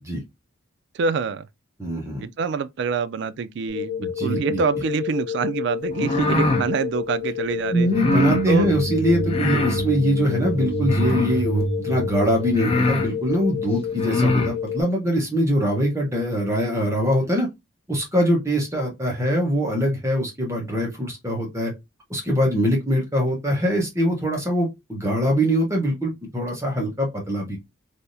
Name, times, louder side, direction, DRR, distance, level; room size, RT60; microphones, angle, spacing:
voice 1, 0.9-1.5 2.2-7.9 8.5-8.7 9.4-9.7, right 5 dB, 60° right, 0.3 m, -26 dB
voice 2, 1.8-2.2 4.0-4.6 7.7-17.5 17.9-21.7 22.1-27.6, equal, 15° right, 1.0 m, -23 dB
sound 1, 3.7-14.8, left 9 dB, 55° left, 1.1 m, -30 dB
sound 2, 5.9-6.7 7.9-8.4 9.3-9.8 10.8-11.4 12.1-12.2 12.5-13.1 13.9-14.5, left 2 dB, 30° left, 0.6 m, -23 dB
sound 3, 7.6-13.6, right 3 dB, 75° right, 1.2 m, -28 dB
3.4 x 2.7 x 2.6 m
head